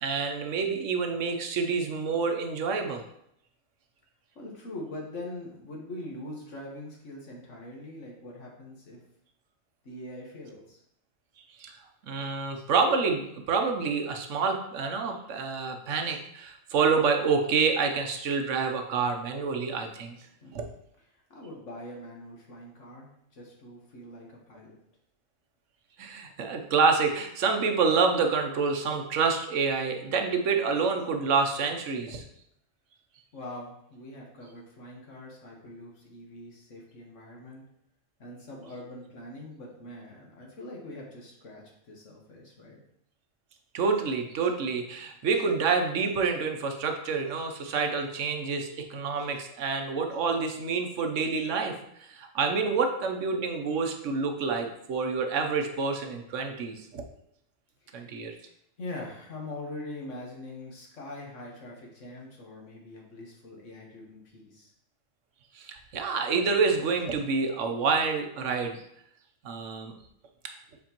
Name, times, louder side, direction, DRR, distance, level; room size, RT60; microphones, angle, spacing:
voice 1, 0.0-3.0 11.6-11.7 12.0-20.2 20.5-20.6 26.0-32.2 43.7-51.7 52.0-57.0 57.9-58.3 65.5-68.8 69.4-69.9, right 5 dB, 75° right, 5 dB, 1.1 m, -27 dB
voice 2, 4.3-9.0 9.8-10.8 20.4-20.7 21.1-24.8 33.3-37.6 38.2-42.8 57.8-58.1 58.8-64.7, left 1 dB, 70° left, -1 dB, 1.7 m, -43 dB
7.3 x 4.4 x 3.0 m, 0.75 s
omnidirectional pair, 1.3 m